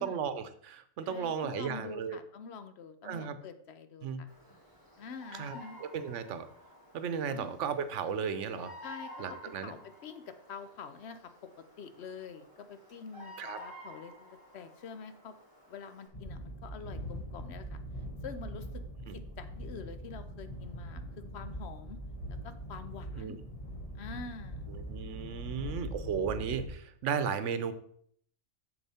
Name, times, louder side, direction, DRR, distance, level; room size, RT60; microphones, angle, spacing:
voice 1, 0.0-2.2 3.0-3.4 4.0-4.2 5.4-5.5 5.9-6.5 6.9-8.7 9.2-9.7 13.4-13.6 19.1-19.2 23.2-23.4 24.7-27.7, right 7 dB, 85° right, 12 dB, 1.0 m, -35 dB
voice 2, 1.0-4.3 5.0-5.8 7.3-7.7 8.8-15.4 15.7-17.8 18.2-22.0 22.3-23.4 23.9-24.7, left 5 dB, 65° left, 10 dB, 0.9 m, -46 dB
Bird vocalization bird call bird song, 4.3-16.1, left 1 dB, 15° left, 2.2 m, -52 dB
sound 1, 16.1-26.7, equal, 30° left, 1.1 m, -42 dB
6.9 x 6.9 x 4.2 m, 0.63 s
omnidirectional pair, 1.2 m